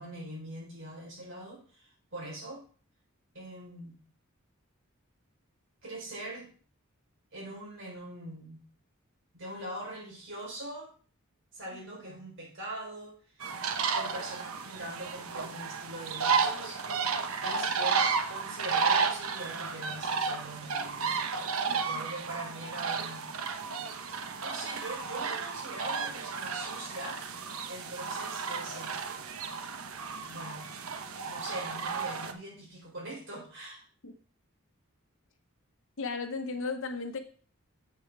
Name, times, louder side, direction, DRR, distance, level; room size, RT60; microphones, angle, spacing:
voice 1, 0.0-2.6 3.3-3.9 5.8-6.5 7.3-8.6 9.3-10.9 11.5-13.4 13.9-17.1 17.4-23.3 24.4-29.0 30.3-30.7 31.3-33.8, right 1 dB, 60° right, -2 dB, 4.2 m, -42 dB
sound 1, 13.4-32.3, right 5 dB, 90° right, 0.9 m, -33 dB
voice 2, 21.7-22.0 34.0-34.1 36.0-37.2, left 4 dB, 65° left, 4 dB, 1.0 m, -36 dB
7.8 x 6.9 x 4.6 m, 0.43 s
head